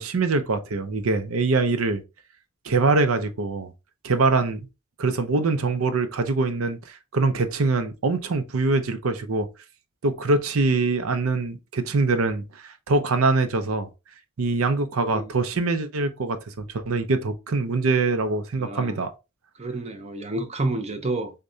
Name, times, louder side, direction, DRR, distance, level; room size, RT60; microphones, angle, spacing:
voice 1, 0.0-2.0 2.6-3.7 4.0-4.7 5.0-9.5 10.0-13.9 14.4-19.1, right 3 dB, 70° right, 0.6 m, -24 dB
voice 2, 18.6-19.0 19.6-21.3, right 2 dB, 30° right, 0.6 m, -29 dB
6.4 x 2.2 x 2.6 m
head